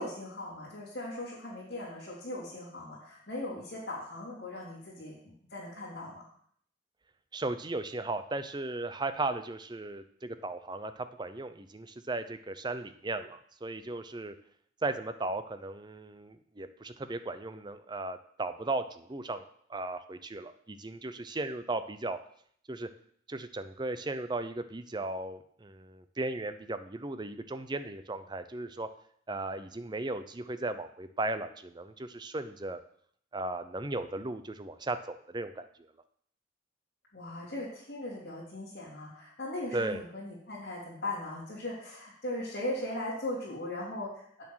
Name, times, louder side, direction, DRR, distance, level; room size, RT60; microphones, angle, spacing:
voice 1, 0.0-6.2 37.1-44.4, left 1 dB, 55° left, -9 dB, 3.4 m, -39 dB
voice 2, 7.3-14.3 14.8-22.2 22.7-22.9 23.3-28.9 29.3-32.8 33.3-35.9 39.7-40.0, right 2 dB, 25° right, 10 dB, 0.6 m, -36 dB
8.3 x 7.2 x 6.3 m, 0.63 s
head